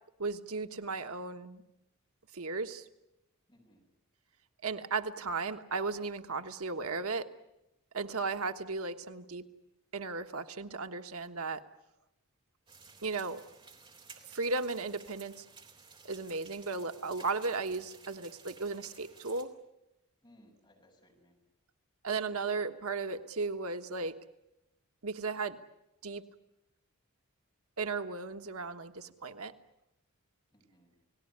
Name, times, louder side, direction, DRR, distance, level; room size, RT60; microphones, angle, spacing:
voice 1, 0.2-1.6 2.3-2.8 4.6-7.2 7.9-9.4 9.9-11.6 13.0-13.4 14.3-15.4 16.0-19.5 22.0-24.1 25.0-25.6 26.0-26.2 27.8-29.5, right 4 dB, 75° right, 8 dB, 1.3 m, -35 dB
voice 2, 3.5-3.9 20.2-21.4 30.5-31.0, equal, 20° left, 1 dB, 7.5 m, -63 dB
sound 1, 12.7-19.4, right 5 dB, 20° right, 3.5 m, -55 dB
30.0 x 19.0 x 9.7 m, 0.91 s
head